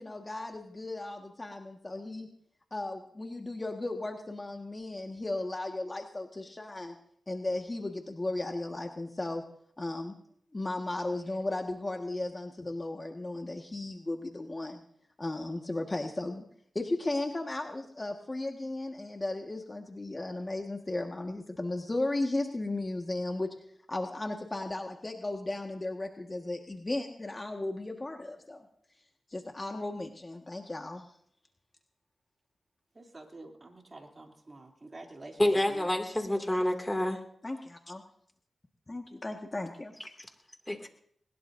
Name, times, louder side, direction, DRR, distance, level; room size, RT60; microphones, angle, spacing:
voice 1, 0.0-2.3 2.7-6.9 7.3-9.4 9.8-10.1 10.5-14.8 15.2-16.4 16.7-23.5 23.9-28.6 29.3-31.1 37.4-37.6 37.9-38.0 38.9-39.9, left 2 dB, 30° left, 3 dB, 1.6 m, -35 dB
voice 2, 32.9-35.9, right 2 dB, 40° right, 1 dB, 3.0 m, -48 dB
voice 3, 35.4-37.2 40.7-40.9, left 1 dB, 15° left, 4 dB, 2.5 m, -28 dB
21.0 x 19.5 x 2.7 m, 0.67 s
cardioid pair, 55°, 0 cm